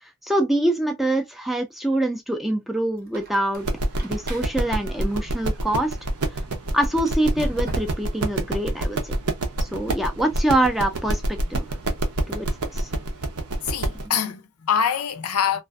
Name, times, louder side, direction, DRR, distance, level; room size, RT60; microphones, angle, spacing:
voice 1, 0.0-3.7 4.0-6.0 6.3-6.4 6.7-9.1 9.6-11.7 12.3-12.5 12.7-12.9, right 1 dB, ahead, 0.3 m, -25 dB
Squeak, 3.0-6.2 7.0-8.2, right 2 dB, 45° right, 0.7 m, -40 dB
sound 1, 3.6-14.1, right 1 dB, 85° right, 0.7 m, -27 dB
voice 2, 13.6-15.6, left 8 dB, 75° left, 0.5 m, -24 dB
2.4 x 2.4 x 2.2 m
head